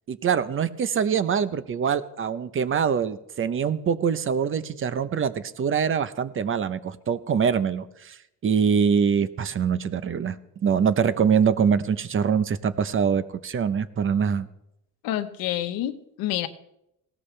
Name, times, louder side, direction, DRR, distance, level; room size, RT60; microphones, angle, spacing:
voice 1, 0.1-8.2 8.4-10.3 10.6-14.5, right 7 dB, 35° right, 13 dB, 0.9 m, -24 dB
voice 2, 15.0-16.5, left 12 dB, 85° left, 10 dB, 1.1 m, -28 dB
19.0 x 17.5 x 3.4 m, 0.83 s
cardioid pair, 120°, 34 cm